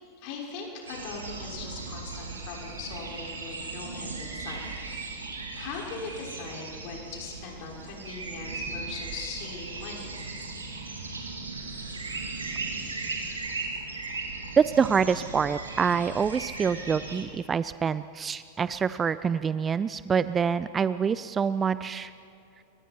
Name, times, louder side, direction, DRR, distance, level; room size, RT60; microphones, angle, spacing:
voice 1, 0.2-4.6 5.5-10.2, left 4 dB, 45° left, -2 dB, 6.0 m, -40 dB
sound 1, 0.9-17.2, right 3 dB, 75° right, 3.6 m, -37 dB
voice 2, 14.6-22.1, right 6 dB, 20° right, 15 dB, 0.5 m, -26 dB
29.0 x 24.0 x 4.6 m, 2.5 s
figure-of-eight pair, 90°, 0 cm